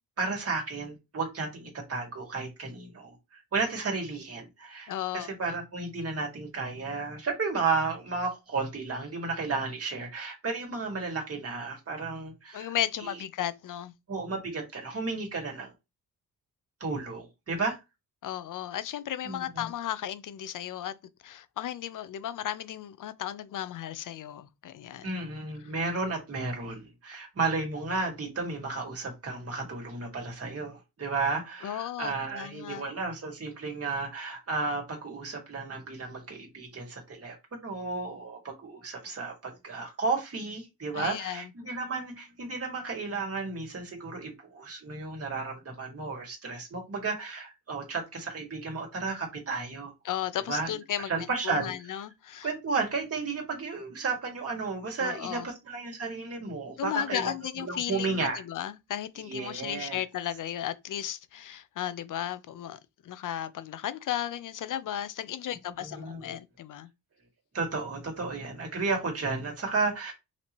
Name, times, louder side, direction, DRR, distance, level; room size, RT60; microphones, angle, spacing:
voice 1, 0.2-12.7 13.0-13.1 14.1-15.7 16.8-17.8 19.2-19.7 25.0-37.4 37.6-49.9 50.5-50.7 51.1-51.7 52.4-58.4 59.2-60.0 65.8-66.4 67.5-70.1, right 4 dB, 45° right, 2.1 m, -33 dB
voice 2, 4.9-5.3 12.5-13.9 18.2-21.0 21.2-25.2 31.6-32.8 40.9-41.5 50.0-51.1 51.4-52.5 55.0-55.5 56.8-66.9, left 11 dB, 65° left, 0.6 m, -35 dB
5.8 x 2.8 x 3.0 m
cardioid pair, 105°, 34 cm